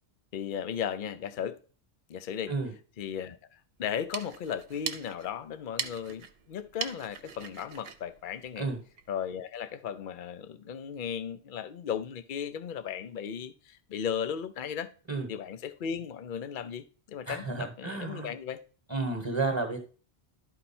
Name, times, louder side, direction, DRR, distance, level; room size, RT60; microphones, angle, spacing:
voice 1, 0.3-1.6 2.1-2.5 3.0-8.7 9.1-14.9 15.3-18.6, left 8 dB, 55° left, 0.7 m, -36 dB
sound 1, 3.8-9.1, right 7 dB, 65° right, 1.0 m, -41 dB
voice 2, 17.3-18.3 18.9-19.8, right 3 dB, 25° right, 1.2 m, -31 dB
12.0 x 4.5 x 4.3 m
omnidirectional pair, 1.1 m